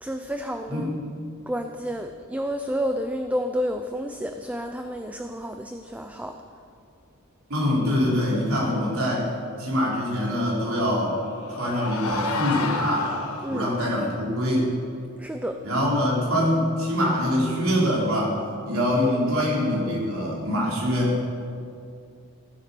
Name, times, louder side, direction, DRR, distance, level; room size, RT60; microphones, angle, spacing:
voice 1, 0.0-0.9 1.5-6.3 13.4-13.7 15.2-15.6, equal, 5° right, 6 dB, 0.5 m, -30 dB
voice 2, 0.7-1.0 7.5-9.3 9.6-11.2 11.6-13.1 13.5-14.7 15.6-18.4 18.6-21.2, equal, 70° right, -5 dB, 4.3 m, -24 dB
sound 1, 10.9-13.9, left 3 dB, 90° left, 1.3 m, -31 dB
15.5 x 9.7 x 6.9 m, 2.4 s
head